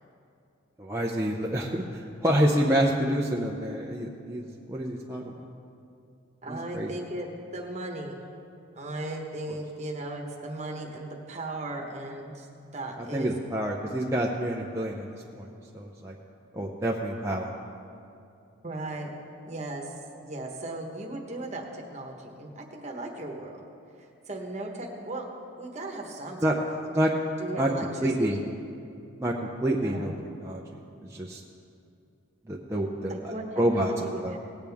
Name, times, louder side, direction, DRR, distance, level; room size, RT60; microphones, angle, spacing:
voice 1, 0.8-5.3 6.5-6.9 13.0-15.5 15.7-16.1 16.5-17.5 26.4-26.5 27.0-27.1 27.6-27.7 28.0-28.4 29.2-29.3 29.6-30.1 30.4-30.6 31.1-31.4 32.5-33.1 33.6-33.9 34.2-34.3, right 1 dB, 15° right, -3 dB, 0.5 m, -27 dB
voice 2, 6.4-8.2 8.7-12.5 12.7-13.3 18.6-19.1 19.5-23.6 24.0-25.3 25.6-26.9 27.4-28.5 29.8-30.1 33.1-34.4, right 2 dB, 35° right, 1 dB, 1.2 m, -37 dB
18.5 x 8.7 x 3.5 m, 2.7 s
head